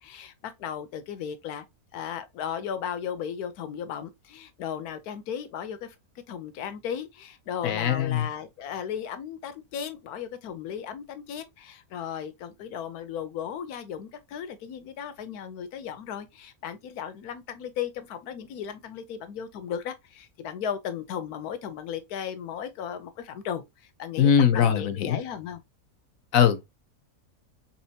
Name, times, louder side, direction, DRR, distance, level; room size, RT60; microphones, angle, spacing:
voice 1, 0.0-1.6 1.9-6.0 6.3-25.6, left 8 dB, 90° left, 1.2 m, -36 dB
voice 2, 7.6-8.3 24.2-25.2 26.3-26.8, left 8 dB, 70° left, 1.0 m, -21 dB
4.2 x 3.7 x 2.7 m
omnidirectional pair, 1.6 m